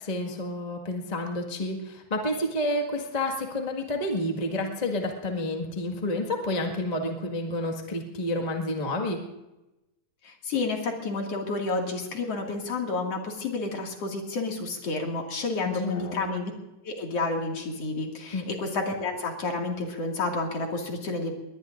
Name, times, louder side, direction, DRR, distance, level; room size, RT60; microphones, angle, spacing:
voice 1, 0.0-9.2 15.6-16.3 18.3-18.5, left 1 dB, 25° left, 2 dB, 0.8 m, -30 dB
voice 2, 10.2-16.5 16.8-21.3, left 3 dB, 50° left, 1 dB, 3.0 m, -30 dB
21.5 x 19.5 x 2.6 m, 0.96 s
omnidirectional pair, 4.0 m